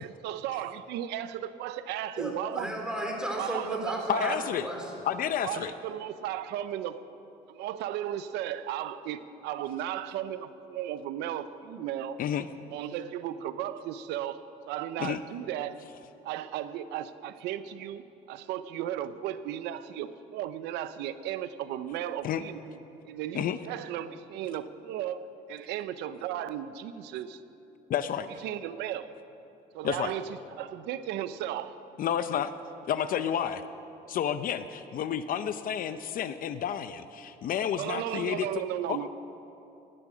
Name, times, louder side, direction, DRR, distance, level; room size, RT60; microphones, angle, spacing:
voice 1, 0.0-2.7 3.4-4.4 5.4-7.0 7.5-12.2 12.7-14.4 14.7-15.8 16.2-22.6 23.1-27.4 28.4-29.1 29.7-30.3 30.5-31.7 37.8-39.1, right 11 dB, 85° right, 13 dB, 0.6 m, -35 dB
voice 2, 2.2-5.0, equal, 5° right, 0 dB, 3.4 m, -34 dB
voice 3, 4.1-4.7 5.1-5.7 12.2-12.5 15.0-15.2 22.2-22.4 23.3-23.6 27.9-28.3 29.8-30.1 32.0-32.5 32.9-33.6 34.1-38.5 38.9-39.1, left 9 dB, 55° left, 11 dB, 0.6 m, -30 dB
18.0 x 12.0 x 6.2 m, 2.9 s
cardioid pair, 110°, 17 cm